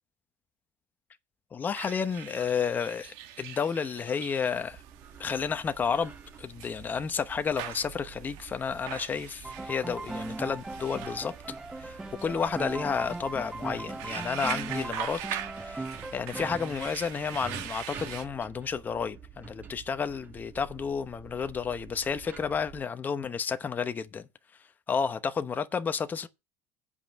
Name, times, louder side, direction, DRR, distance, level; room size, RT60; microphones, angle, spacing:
voice 1, 1.5-4.8 5.2-6.1 6.4-11.3 11.8-12.0 12.2-15.2 15.6-24.2 24.9-26.3, left 6 dB, 25° left, 0.9 m, -31 dB
sound 1, 1.7-18.3, right 11 dB, 75° right, 1.7 m, -43 dB
sound 2, 4.5-22.8, right 6 dB, 25° right, 2.0 m, -49 dB
Piano, 9.4-16.8, right 2 dB, 5° right, 0.5 m, -38 dB
8.4 x 5.3 x 7.5 m
supercardioid pair, 120°, 7 cm